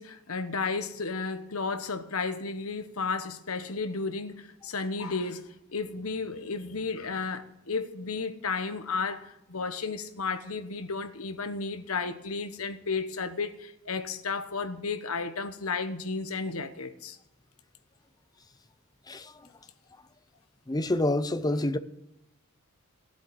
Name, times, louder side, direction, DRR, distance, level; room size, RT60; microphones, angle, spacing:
voice 1, 0.0-17.2, left 4 dB, 80° left, 1.1 m, -33 dB
voice 2, 20.7-21.8, left 1 dB, 20° left, 0.6 m, -27 dB
15.5 x 8.0 x 8.4 m
head